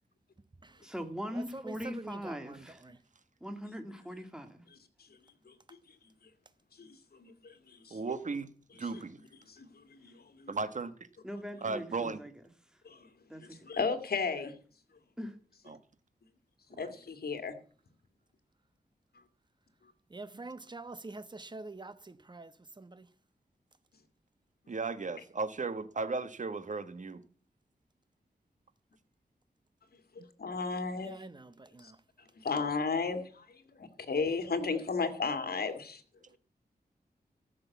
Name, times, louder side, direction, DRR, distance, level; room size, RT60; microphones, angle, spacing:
voice 1, 0.8-2.8 3.4-4.6 11.2-12.3 13.3-13.4 15.2-15.3, equal, 5° right, 2.1 m, -40 dB
voice 2, 1.3-3.0 20.1-23.1 31.0-32.0, right 3 dB, 25° right, 1.1 m, -46 dB
voice 3, 6.8-8.0 9.4-10.5 13.7-14.6 16.8-17.5 30.4-31.2 31.8-31.9 32.4-36.0, left 4 dB, 70° left, 2.2 m, -34 dB
voice 4, 7.9-8.5 8.8-9.2 10.5-10.9 11.6-12.2 15.7-15.8 16.7-16.9 24.7-27.2 30.2-30.3, right 4 dB, 50° right, 1.4 m, -35 dB
14.0 x 6.7 x 8.4 m
wide cardioid pair, 85°, 17 cm